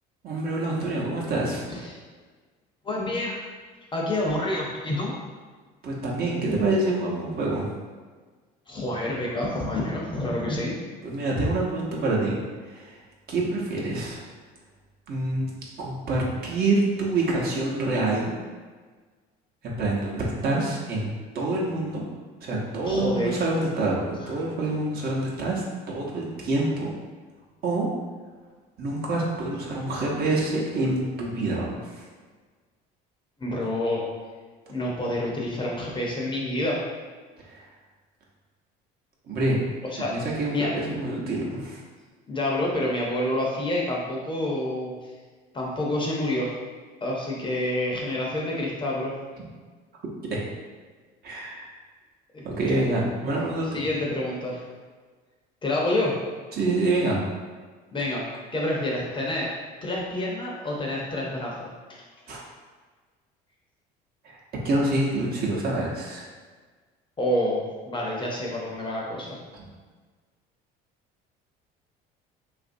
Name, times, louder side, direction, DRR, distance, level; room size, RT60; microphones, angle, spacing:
voice 1, 0.2-1.6 5.8-7.7 11.0-13.0 13.3-14.2 15.1-15.5 15.8-18.3 19.6-22.0 22.4-26.9 27.6-27.9 28.8-32.0 37.5-37.7 39.3-39.6 40.1-41.8 50.3-50.4 51.2-51.7 52.4-53.7 56.5-57.2 62.3-62.4 64.2-64.4 64.6-66.2, right 2 dB, 50° right, -4 dB, 0.8 m, -26 dB
voice 2, 2.8-3.4 3.9-5.1 8.7-10.7 22.8-23.4 24.2-24.3 33.4-34.0 34.7-36.8 39.9-40.1 40.5-40.7 42.3-44.9 45.5-46.5 47.0-49.1 52.3-52.4 52.7-52.9 53.7-54.6 55.6-56.1 57.9-59.5 59.8-61.7 67.2-69.4, left 1 dB, 25° left, -3 dB, 0.6 m, -28 dB
2.9 x 2.5 x 2.5 m, 1.4 s
supercardioid pair, 95°, 20 cm